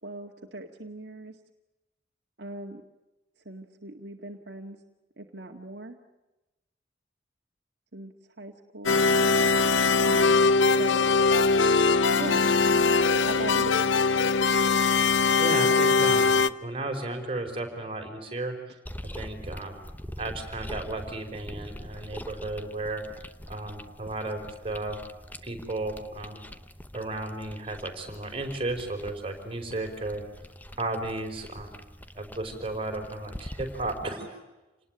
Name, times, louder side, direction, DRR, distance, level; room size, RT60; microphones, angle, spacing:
voice 1, 0.0-1.4 2.4-2.8 3.5-4.8 5.2-6.0 7.9-9.0 10.0-11.2 12.2-12.4 13.2-13.8, right 2 dB, 60° right, 2 dB, 1.9 m, -40 dB
sound 1, 8.9-16.5, left 4 dB, 80° left, 0.8 m, -21 dB
voice 2, 15.4-18.6 19.1-19.8 20.2-23.1 23.5-25.0 25.4-26.5 26.9-30.2 30.8-31.9 32.1-34.4, right 2 dB, 30° right, 4 dB, 4.8 m, -34 dB
sound 2, 18.8-34.1, equal, 10° left, 0.9 m, -44 dB
28.5 x 19.5 x 9.0 m, 1.0 s
head